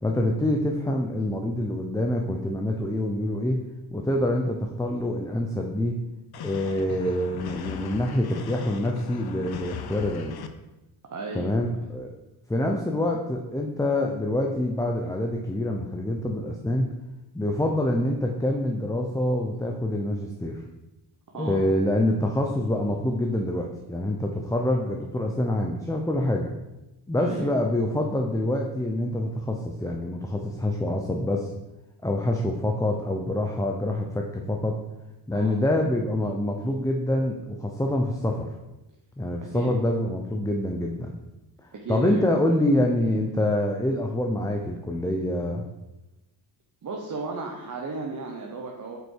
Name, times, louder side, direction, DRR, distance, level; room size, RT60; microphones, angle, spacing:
voice 1, 0.0-3.6 3.9-6.0 6.4-10.4 11.3-12.1 12.5-16.9 17.3-20.6 21.4-26.5 27.1-31.5 32.0-34.8 35.3-38.5 39.2-41.2 41.9-45.6, left 1 dB, 5° left, 1 dB, 0.8 m, -26 dB
sound 1, 6.3-10.5, left 8 dB, 55° left, 0.8 m, -38 dB
voice 2, 11.1-11.5 21.3-21.6 27.2-27.5 35.3-35.6 39.5-39.7 41.7-42.3 46.8-49.0, right 3 dB, 45° right, 0 dB, 1.1 m, -34 dB
7.9 x 5.3 x 4.7 m, 0.98 s
cardioid pair, 85°, 45 cm